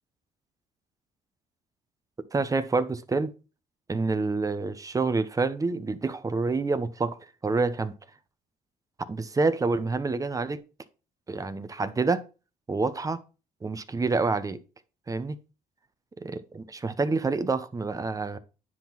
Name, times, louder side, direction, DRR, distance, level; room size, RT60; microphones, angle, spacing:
voice 1, 2.3-3.3 3.9-7.9 9.0-10.6 11.3-12.2 12.7-13.2 13.6-14.6 15.1-15.4 16.2-18.4, right 3 dB, 20° right, 0.9 m, -27 dB
9.8 x 3.8 x 5.9 m
cardioid pair, 110°, 17 cm